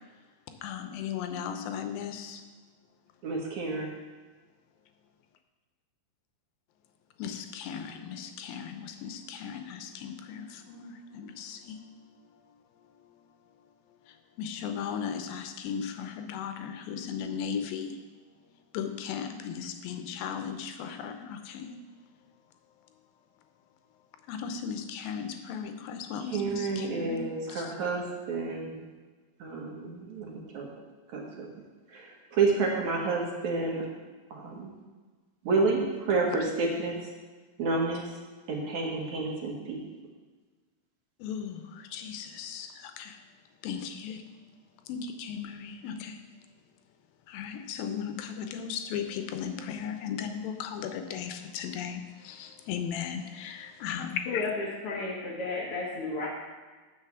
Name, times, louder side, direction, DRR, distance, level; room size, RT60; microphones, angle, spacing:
voice 1, 0.6-2.4 7.2-11.8 14.4-18.0 18.7-21.8 24.3-27.6 41.2-43.2 43.6-44.2 44.9-46.2 47.3-54.5, left 7 dB, 80° left, 7 dB, 2.5 m, -36 dB
voice 2, 3.2-3.9 26.2-28.8 29.4-30.7 31.1-31.5 31.9-33.8 34.3-34.7 35.4-37.1 37.6-38.1 38.5-39.8, right 3 dB, 60° right, -1 dB, 2.4 m, -30 dB
voice 3, 54.2-56.3, left 3 dB, 60° left, -4 dB, 1.6 m, -33 dB
8.2 x 6.4 x 7.1 m, 1.3 s
omnidirectional pair, 4.2 m